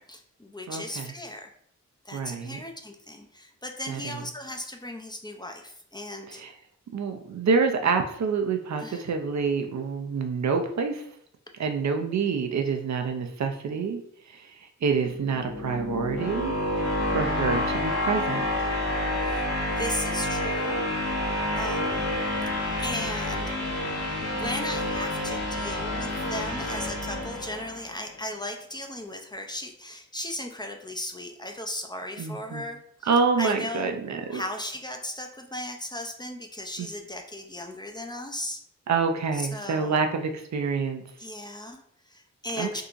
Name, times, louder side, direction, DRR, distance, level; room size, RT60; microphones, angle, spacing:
voice 1, 0.0-1.5 2.0-6.4 8.8-9.1 19.2-20.8 21.6-22.1 22.8-23.5 24.2-33.1 33.4-33.9 34.3-38.6 39.3-40.0 41.2-42.8, left 1 dB, 15° left, 3 dB, 0.4 m, -36 dB
voice 2, 0.7-1.1 2.1-2.6 3.9-4.2 6.3-6.5 6.9-11.0 11.6-14.0 14.3-16.5 17.1-18.7 32.2-32.6 33.1-34.4 36.8-36.9 38.9-41.0 42.6-42.8, right 5 dB, 70° right, 5 dB, 0.5 m, -27 dB
sound 1, 15.1-28.0, left 1 dB, 60° left, 0.7 m, -29 dB
3.7 x 2.8 x 2.5 m, 0.66 s
wide cardioid pair, 75°, 29 cm